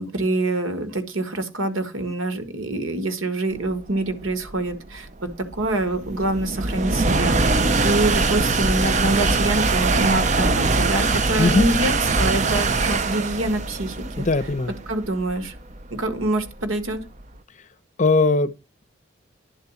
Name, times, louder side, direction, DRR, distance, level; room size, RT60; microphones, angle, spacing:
voice 1, 0.0-5.1 5.5-14.3 14.9-15.5 15.9-17.0, right 2 dB, 85° right, 1.6 m, -25 dB
sound 1, 3.9-17.2, right 3 dB, 35° right, 0.6 m, -22 dB
voice 2, 11.4-11.7 14.2-14.7 18.0-18.5, left 3 dB, 35° left, 0.7 m, -19 dB
10.5 x 4.0 x 7.1 m
head